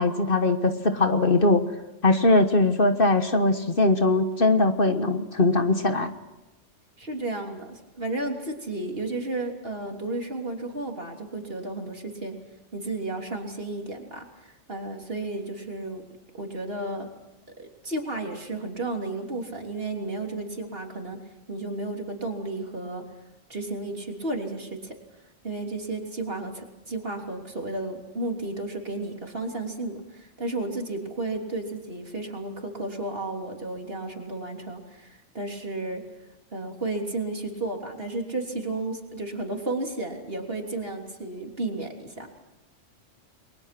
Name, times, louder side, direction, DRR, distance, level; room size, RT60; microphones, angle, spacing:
voice 1, 0.0-1.6 2.0-6.1, left 2 dB, 50° left, 7 dB, 1.6 m, -21 dB
voice 2, 7.0-12.3 12.7-14.3 14.7-16.0 16.3-17.1 17.6-21.2 21.5-23.0 23.5-24.9 25.4-36.0 36.5-42.4, right 2 dB, 50° right, 2 dB, 3.6 m, -33 dB
30.0 x 22.0 x 6.1 m, 0.97 s
omnidirectional pair, 1.2 m